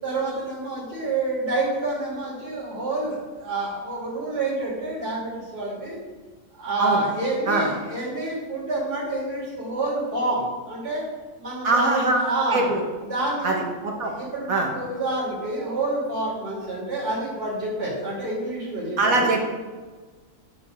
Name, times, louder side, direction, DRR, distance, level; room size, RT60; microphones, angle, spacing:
voice 1, 0.0-6.0 6.5-11.0 11.4-12.7 13.0-13.6 14.0-19.3, right 2 dB, 45° right, -6 dB, 3.1 m, -28 dB
voice 2, 11.6-12.2 12.5-12.8 13.4-14.1 14.5-14.7 19.0-19.4, right 2 dB, 75° right, 0 dB, 2.1 m, -22 dB
9.9 x 5.4 x 6.5 m, 1.4 s
omnidirectional pair, 1.5 m